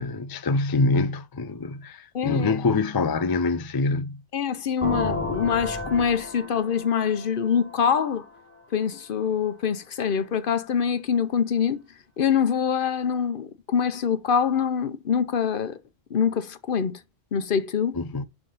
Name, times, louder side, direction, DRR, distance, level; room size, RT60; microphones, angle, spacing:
voice 1, 0.0-4.2 17.9-18.2, left 3 dB, 35° left, 0.3 m, -25 dB
voice 2, 2.1-2.6 4.3-8.2 8.7-11.8 12.2-15.8 16.1-17.0 17.3-18.0, left 7 dB, 55° left, 0.8 m, -24 dB
sound 1, 4.8-8.5, left 2 dB, 10° left, 1.2 m, -32 dB
10.5 x 3.6 x 3.9 m
omnidirectional pair, 1.2 m